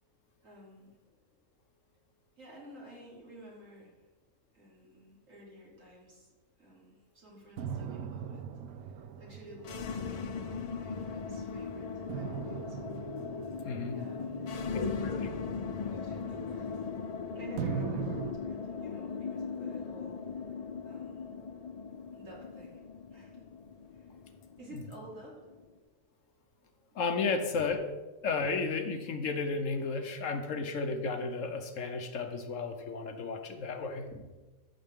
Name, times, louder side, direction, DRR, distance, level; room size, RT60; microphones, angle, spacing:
voice 1, 0.4-0.9 2.4-4.0 4.5-6.3 6.6-8.4 8.8-12.9 13.9-20.2 20.8-21.3 22.1-22.8 23.1-23.4 23.9-24.1 24.6-25.4 34.1-34.2, right 1 dB, 65° right, -5 dB, 3.5 m, -52 dB
sound 1, 7.6-11.2 12.1-17.1 17.6-18.3, right 7 dB, 85° right, 1.1 m, -40 dB
sound 2, 9.6-25.6, left 5 dB, 85° left, 0.3 m, -39 dB
voice 2, 13.7-14.0 14.7-15.3 24.7-24.8 26.9-27.9 28.2-34.1, left 4 dB, 65° left, 6 dB, 1.2 m, -33 dB
13.5 x 6.7 x 3.6 m, 1.2 s
omnidirectional pair, 1.5 m